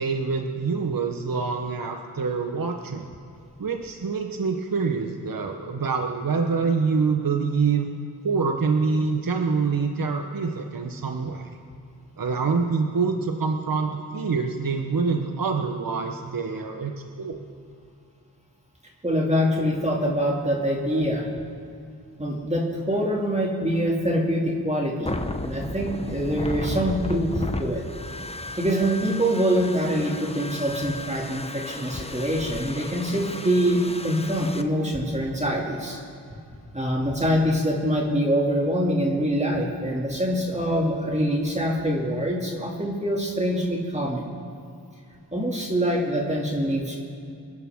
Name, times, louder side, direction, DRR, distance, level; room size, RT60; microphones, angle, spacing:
voice 1, 0.0-3.1 3.6-7.9 8.2-11.5 12.2-17.4, right 5 dB, 60° right, 4 dB, 1.0 m, -26 dB
voice 2, 19.0-21.2 22.2-27.8 28.6-36.0 36.7-44.3 45.3-47.0, equal, 15° right, -2 dB, 2.4 m, -24 dB
sound 1, 25.1-34.6, left 2 dB, 15° left, 0.8 m, -34 dB
26.5 x 10.5 x 3.6 m, 2.5 s
cardioid pair, 50°, 39 cm